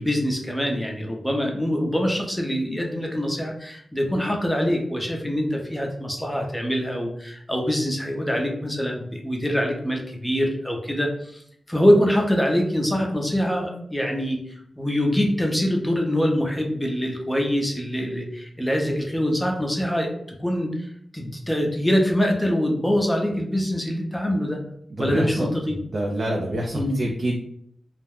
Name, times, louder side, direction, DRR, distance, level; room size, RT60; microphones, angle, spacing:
voice 1, 0.0-11.4 11.7-14.4 14.8-20.1 20.4-24.6 25.0-25.8 26.7-27.0, equal, 5° left, 1 dB, 0.6 m, -24 dB
voice 2, 24.9-25.5 25.9-27.3, right 1 dB, 60° right, -1 dB, 0.4 m, -26 dB
2.4 x 2.1 x 3.5 m, 0.68 s
wide cardioid pair, 80°, 0 cm